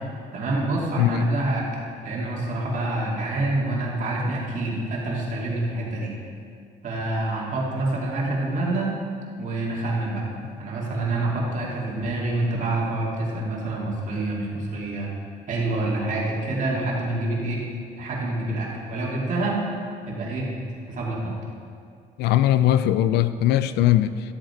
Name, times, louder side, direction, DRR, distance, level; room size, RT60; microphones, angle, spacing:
voice 1, 0.3-1.6 2.0-6.1 6.8-8.9 9.4-10.2 10.6-15.1 15.5-17.6 18.0-19.6 20.1-20.5 20.9-21.4, right 2 dB, 50° right, -4 dB, 2.6 m, -27 dB
voice 2, 1.0-1.3 22.2-24.1, left 12 dB, 80° left, 13 dB, 0.5 m, -20 dB
13.0 x 7.4 x 4.5 m, 2.3 s
cardioid pair, 110°, 17 cm